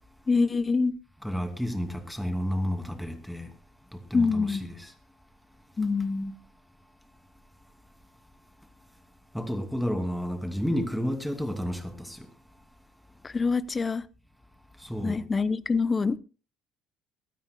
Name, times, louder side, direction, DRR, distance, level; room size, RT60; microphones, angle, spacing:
voice 1, 0.3-1.0 4.1-4.6 5.8-6.3 13.2-14.0 15.0-16.2, left 4 dB, 25° left, 0.8 m, -25 dB
voice 2, 1.2-3.5 3.9-4.9 9.3-12.3 14.8-15.2, equal, ahead, 2.5 m, -31 dB
23.0 x 13.0 x 2.2 m
hypercardioid pair, 55°, 0 cm